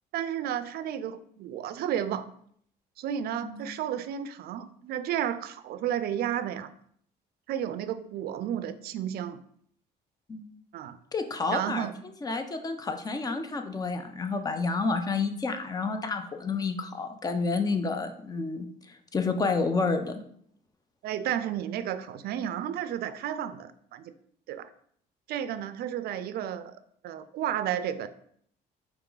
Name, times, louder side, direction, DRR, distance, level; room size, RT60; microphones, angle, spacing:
voice 1, 0.1-2.3 3.0-6.7 7.5-9.4 10.7-11.0 11.5-11.9 21.0-24.1 24.5-24.7 25.3-28.1, right 10 dB, 70° right, 12 dB, 0.4 m, -32 dB
voice 2, 11.1-11.9 12.2-20.2, left 4 dB, 20° left, 7 dB, 0.6 m, -30 dB
4.6 x 3.0 x 3.8 m, 0.63 s
cardioid pair, 110°, 17 cm